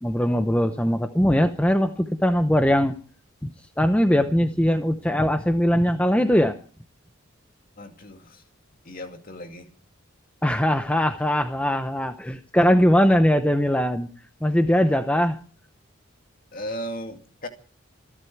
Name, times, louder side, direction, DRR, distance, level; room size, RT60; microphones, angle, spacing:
voice 1, 0.0-2.9 3.4-3.5 3.8-6.6 10.4-14.1 14.4-15.4, equal, 5° left, 7 dB, 0.7 m, -21 dB
voice 2, 7.8-8.4 8.8-9.7 16.5-17.5, equal, 40° left, 5 dB, 2.3 m, -36 dB
26.5 x 11.0 x 4.6 m, 0.43 s
head